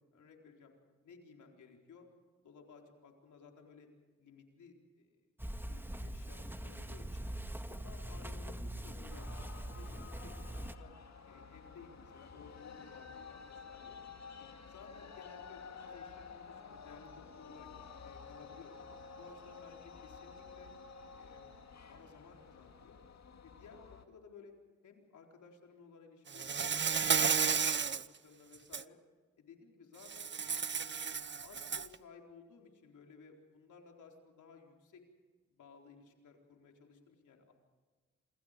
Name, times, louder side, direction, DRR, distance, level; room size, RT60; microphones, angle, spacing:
voice 1, 0.1-0.7 1.0-2.1 2.4-3.9 4.2-5.2 5.7-7.3 7.7-9.3 9.7-10.9 11.2-14.0 14.4-17.7 18.0-18.8 19.1-20.7 21.1-21.5 21.9-23.0 23.4-24.5 24.8-29.0 29.4-30.3 30.7-35.0 35.5-37.5, left 5 dB, 80° left, 2 dB, 4.3 m, -57 dB
sound 1, 5.4-10.7, right 1 dB, 5° right, 1.9 m, -43 dB
sound 2, 9.1-24.1, left 5 dB, 65° left, 2.3 m, -52 dB
Insect, 26.3-28.1 28.5-28.8 30.1-31.9, right 6 dB, 40° right, 0.8 m, -32 dB
27.5 x 25.5 x 5.2 m, 1.4 s
supercardioid pair, 45°, 30 cm